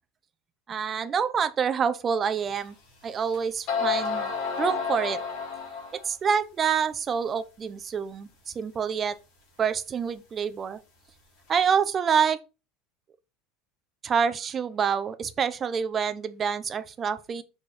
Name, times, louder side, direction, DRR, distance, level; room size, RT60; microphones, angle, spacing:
voice 1, 0.7-2.8 3.0-4.3 4.6-5.2 6.0-9.2 9.6-10.8 11.5-12.4 14.0-17.4, right 7 dB, 25° right, 0.6 m, -27 dB
sound 1, 2.6-2.7 3.3-3.4 3.7-6.1, left 5 dB, 55° left, 3.2 m, -30 dB
6.4 x 4.5 x 4.2 m
cardioid pair, 155°, 0 cm